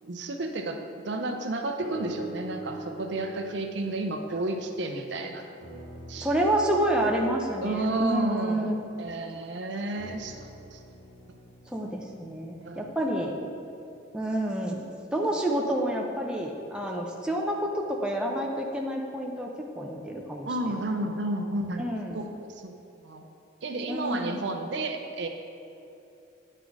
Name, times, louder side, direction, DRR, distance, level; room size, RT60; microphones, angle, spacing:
voice 1, 0.0-5.5 6.1-6.3 7.6-8.7 9.0-10.8 12.6-12.8 20.5-21.8 22.1-22.7 23.0-23.3 23.6-25.3, right 2 dB, 60° right, 5 dB, 0.6 m, -32 dB
sound 1, 1.8-5.2 5.6-9.3 9.9-14.1 14.8-14.9, right 2 dB, 55° left, 1.0 m, -45 dB
voice 2, 6.2-8.7 9.0-9.1 11.7-13.3 14.1-19.5 19.8-20.9 21.8-22.2 23.9-24.3, right 1 dB, 5° right, -1 dB, 0.6 m, -29 dB
9.9 x 4.2 x 4.6 m, 2.8 s
head